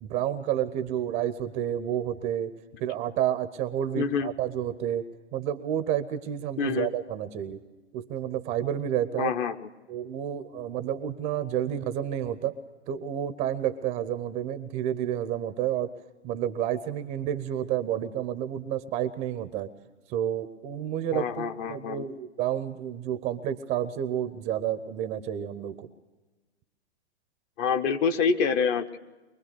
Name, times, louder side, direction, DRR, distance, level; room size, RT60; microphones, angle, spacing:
voice 1, 0.0-2.5 2.8-7.6 7.9-9.3 9.9-12.5 12.9-15.9 16.2-19.7 20.1-25.9, right 10 dB, 20° right, 12 dB, 0.6 m, -30 dB
voice 2, 4.0-4.3 6.6-6.9 9.2-9.5 21.1-22.0 27.6-29.0, left 6 dB, 20° left, 10 dB, 0.6 m, -26 dB
24.0 x 20.0 x 6.7 m, 1.2 s
hypercardioid pair, 130°, 36 cm